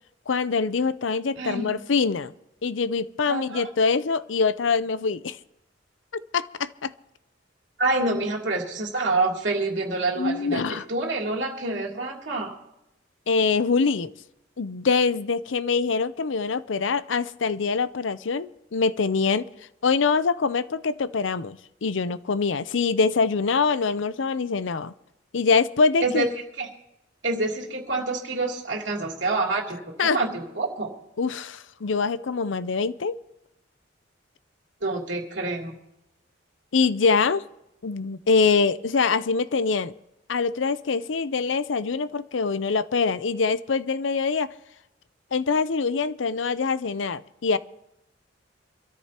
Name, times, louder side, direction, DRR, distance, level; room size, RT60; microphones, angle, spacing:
voice 1, 0.3-2.3 2.6-5.4 6.3-6.9 10.2-10.8 13.3-14.1 14.6-19.4 19.8-24.9 25.3-26.3 30.0-30.2 31.2-33.2 36.7-37.4 37.8-39.9 40.3-44.5 45.3-47.6, left 4 dB, 85° left, 15 dB, 0.6 m, -24 dB
voice 2, 1.3-1.8 3.3-3.7 7.8-12.6 26.0-26.3 26.6-26.7 27.2-30.9 34.8-35.8, right 2 dB, 70° right, -1 dB, 3.0 m, -27 dB
26.0 x 13.5 x 2.9 m, 0.88 s
head